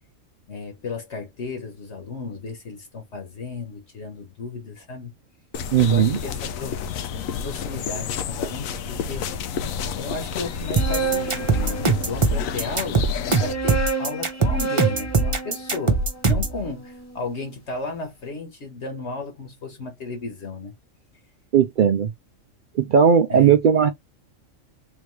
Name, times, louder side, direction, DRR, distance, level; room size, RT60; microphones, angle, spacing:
voice 1, 0.5-5.1 5.8-6.8 7.4-9.6 9.9-20.7 23.3-23.6, left 3 dB, 60° left, 1.4 m, -34 dB
sound 1, 5.5-13.5, left 7 dB, 85° left, 1.1 m, -31 dB
voice 2, 5.7-6.2 21.5-22.1 22.8-23.9, right 7 dB, 70° right, 0.4 m, -17 dB
sound 2, 10.5-12.4 13.1-17.3, right 5 dB, 20° left, 0.4 m, -30 dB
sound 3, 10.8-16.6, right 3 dB, 25° right, 0.9 m, -21 dB
3.8 x 3.3 x 3.1 m
omnidirectional pair, 1.4 m